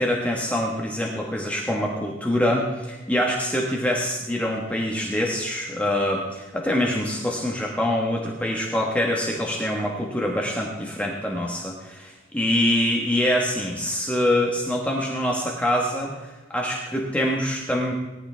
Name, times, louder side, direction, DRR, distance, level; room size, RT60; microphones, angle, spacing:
voice 1, 0.0-17.9, left 1 dB, 5° left, -1 dB, 1.4 m, -25 dB
18.5 x 11.5 x 3.4 m, 1.2 s
head